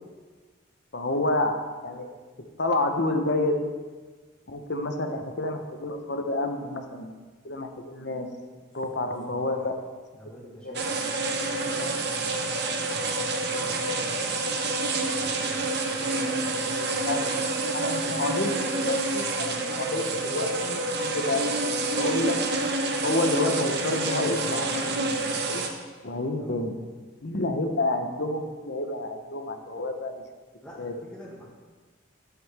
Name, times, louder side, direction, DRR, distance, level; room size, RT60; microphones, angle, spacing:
voice 1, 0.9-2.1 2.6-3.7 4.5-7.1 7.4-8.3 8.7-9.7 10.6-10.8 17.1-17.3 17.7-18.5 18.9-22.4 23.0-25.2 25.5-25.6 26.0-26.8 27.2-30.2 30.8-30.9, left 2 dB, 55° left, 5 dB, 0.9 m, -29 dB
voice 2, 9.0-9.7 10.1-14.6 14.9-17.5 18.0-18.5 19.9-20.2 26.4-26.7 30.6-31.4, equal, 5° left, -6 dB, 1.9 m, -47 dB
sound 1, 10.7-25.7, right 3 dB, 55° right, 0.9 m, -28 dB
11.0 x 7.7 x 3.5 m, 1.4 s
head